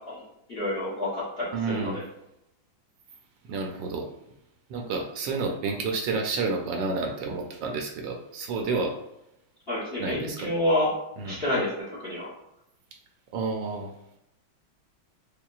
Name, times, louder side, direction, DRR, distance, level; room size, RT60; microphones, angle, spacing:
voice 1, 0.5-2.0 9.7-10.9 11.2-12.3, left 1 dB, 45° left, -7 dB, 0.8 m, -28 dB
voice 2, 1.5-2.0 3.4-4.1 4.7-9.0 10.0-10.5 11.2-11.4 13.3-13.9, right 4 dB, 75° right, 3 dB, 1.2 m, -30 dB
5.4 x 2.2 x 2.3 m, 0.83 s
omnidirectional pair, 2.2 m